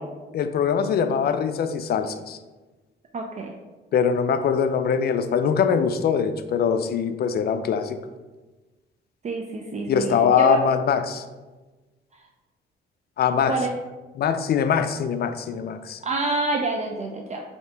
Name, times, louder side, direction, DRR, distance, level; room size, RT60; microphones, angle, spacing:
voice 1, 0.3-2.4 3.9-8.0 9.9-11.2 13.2-13.6 14.2-16.0, left 7 dB, 55° left, 10 dB, 0.4 m, -22 dB
voice 2, 3.1-3.6 9.2-10.6 13.5-13.7 16.0-17.4, right 3 dB, 35° right, 2 dB, 0.4 m, -27 dB
5.5 x 2.7 x 3.3 m, 1.2 s
cardioid pair, 90°, 20 cm